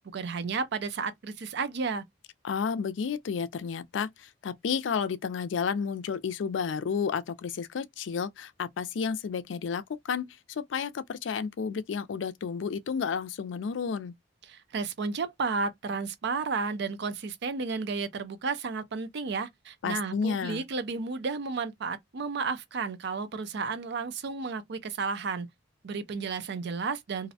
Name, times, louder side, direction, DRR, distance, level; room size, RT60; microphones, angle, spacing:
voice 1, 0.1-2.0 14.5-25.5 25.8-27.3, right 4 dB, 65° right, 0.5 m, -32 dB
voice 2, 2.4-14.1 19.8-20.6, left 6 dB, 75° left, 0.4 m, -31 dB
2.5 x 2.0 x 2.7 m
head